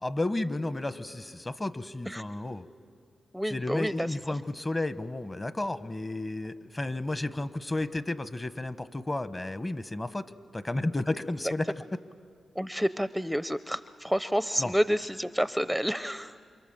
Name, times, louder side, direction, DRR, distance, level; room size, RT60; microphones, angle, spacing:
voice 1, 0.0-2.7 3.5-12.0 14.6-14.7, left 2 dB, 25° left, 13 dB, 1.1 m, -32 dB
voice 2, 3.3-4.2 12.6-16.4, equal, ahead, 13 dB, 0.6 m, -29 dB
28.5 x 25.5 x 7.4 m, 2.2 s
cardioid pair, 50°, 0 cm